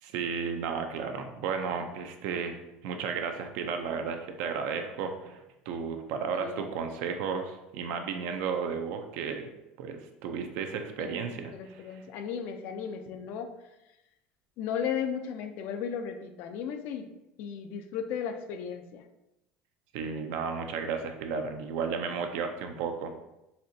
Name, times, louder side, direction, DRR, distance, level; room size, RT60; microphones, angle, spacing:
voice 1, 0.0-9.5 9.8-12.0 19.9-23.3, right 6 dB, 70° right, 6 dB, 0.5 m, -33 dB
voice 2, 6.3-6.7 11.0-13.5 14.6-17.1 17.4-19.0, left 7 dB, 60° left, 7 dB, 0.4 m, -35 dB
4.2 x 2.5 x 2.7 m, 0.91 s
cardioid pair, 140°, 4 cm